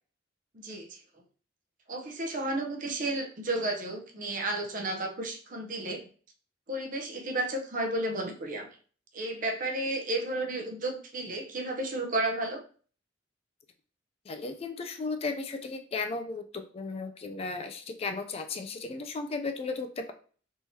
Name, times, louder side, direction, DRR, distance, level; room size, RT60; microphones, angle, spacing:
voice 1, 0.5-1.0 1.9-6.0 6.7-8.7 9.1-12.6, right 2 dB, 45° right, 2 dB, 0.7 m, -32 dB
voice 2, 14.3-20.1, left 3 dB, 35° left, 6 dB, 0.3 m, -35 dB
3.6 x 3.0 x 2.7 m, 0.42 s
head